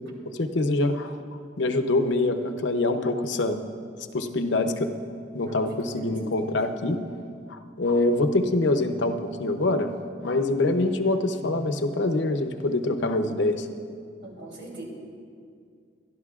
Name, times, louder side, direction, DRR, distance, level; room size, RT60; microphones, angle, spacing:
voice 1, 0.4-1.2 1.6-3.6 4.1-4.9 5.3-7.0 7.5-9.9 10.2-13.7, left 2 dB, 85° left, 7 dB, 0.7 m, -25 dB
voice 2, 5.9-6.5 11.1-11.6 14.2-14.8, right 2 dB, 65° right, -3 dB, 3.3 m, -42 dB
24.0 x 12.0 x 2.4 m, 2.2 s
head